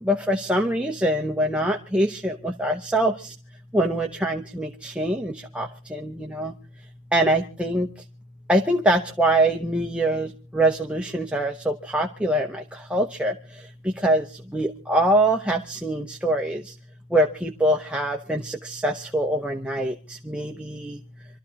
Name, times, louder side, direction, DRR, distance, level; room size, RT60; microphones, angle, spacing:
voice 1, 0.0-3.3 3.7-6.5 7.1-7.9 8.5-16.8 17.1-21.0, right 1 dB, 5° right, 2 dB, 0.8 m, -24 dB
27.0 x 13.0 x 2.9 m, 0.36 s
head